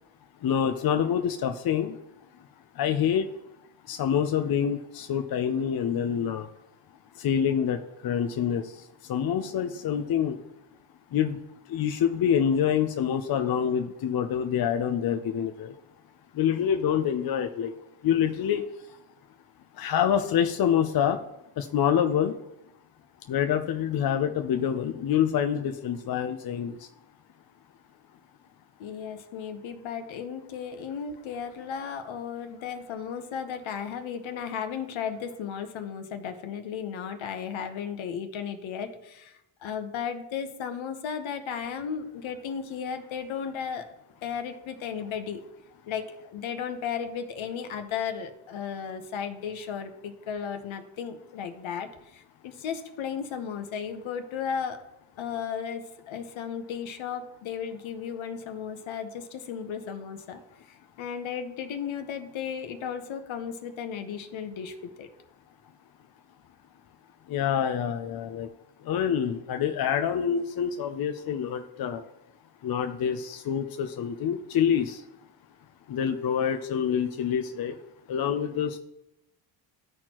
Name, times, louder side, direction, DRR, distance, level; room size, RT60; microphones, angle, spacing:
voice 1, 0.4-2.0 2.8-3.3 3.9-6.5 7.2-10.4 11.1-11.4 11.7-15.7 16.3-17.7 18.0-18.6 19.8-21.2 21.6-22.3 23.3-26.9 67.3-68.5 68.8-72.0 72.6-75.0 75.9-77.8 78.1-78.8, left 8 dB, 45° left, 7 dB, 0.6 m, -26 dB
voice 2, 28.8-43.9 44.2-45.4 45.9-54.9 55.2-60.4 60.7-65.1, left 7 dB, 65° left, 8 dB, 1.0 m, -35 dB
13.0 x 4.4 x 3.0 m, 0.88 s
supercardioid pair, 65°, 50 cm